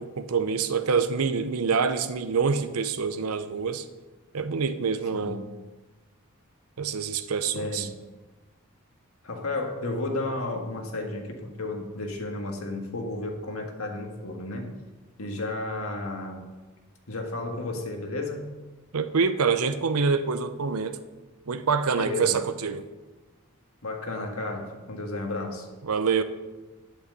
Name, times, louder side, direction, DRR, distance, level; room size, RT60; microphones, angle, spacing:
voice 1, 0.0-3.8 4.3-5.4 6.8-7.9 18.9-21.0 21.5-22.9 25.8-26.2, right 5 dB, 85° right, 10 dB, 0.7 m, -26 dB
voice 2, 5.1-5.5 7.5-8.0 9.2-14.7 15.2-16.5 17.1-18.5 22.0-22.4 23.8-25.7, left 2 dB, 75° left, 2 dB, 1.7 m, -33 dB
8.6 x 7.9 x 6.6 m, 1.2 s
head